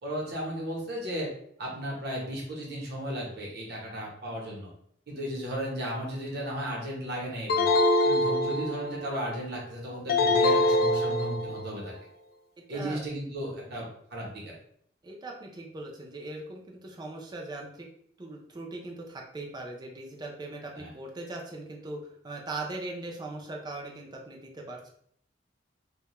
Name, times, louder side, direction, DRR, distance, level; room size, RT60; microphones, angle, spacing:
voice 1, 0.0-1.3 1.6-4.7 5.1-7.7 8.0-11.9 12.7-14.6 20.8-20.9, equal, 60° right, -2 dB, 0.9 m, -35 dB
sound 1, 7.5-9.1 10.1-11.7, left 2 dB, 55° left, 0.3 m, -24 dB
voice 2, 15.0-17.9 18.2-24.9, right 2 dB, 25° right, 0 dB, 0.4 m, -40 dB
2.2 x 2.1 x 2.9 m, 0.66 s
head